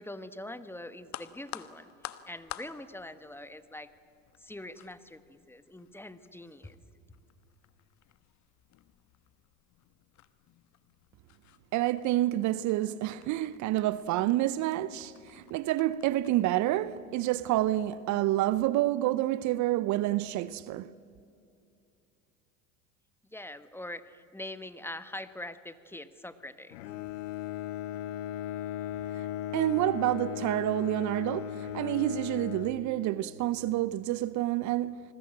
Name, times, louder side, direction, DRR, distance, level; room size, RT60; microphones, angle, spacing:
voice 1, 0.0-1.9 2.2-3.9 4.4-6.8 23.3-26.8, left 1 dB, 5° left, 1.3 m, -43 dB
sound 1, 1.0-18.6, left 13 dB, 45° left, 1.3 m, -52 dB
voice 2, 11.7-20.9 29.1-29.3 29.5-35.0, right 15 dB, 50° right, 0.7 m, -28 dB
Bowed string instrument, 26.7-33.4, left 11 dB, 70° left, 1.3 m, -37 dB
27.0 x 20.5 x 8.8 m
hypercardioid pair, 80°, 39 cm